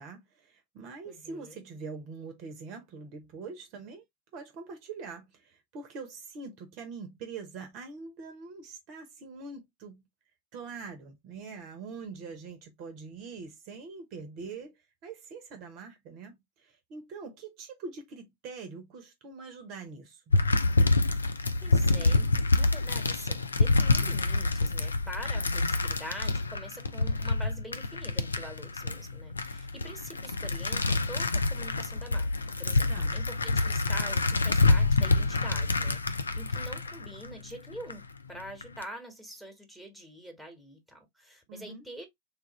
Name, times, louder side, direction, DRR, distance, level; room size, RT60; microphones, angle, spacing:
voice 1, 0.0-4.0 4.3-10.0 10.5-20.3 32.9-33.2 41.5-41.8, right 4 dB, 40° right, 0.8 m, -43 dB
voice 2, 1.0-1.6 21.3-22.3 22.5-42.1, right 1 dB, 5° left, 1.3 m, -45 dB
sound 1, 20.3-37.9 38.4-38.8, left 3 dB, 75° left, 0.4 m, -27 dB
3.3 x 2.4 x 3.0 m
figure-of-eight pair, 90°, 0 cm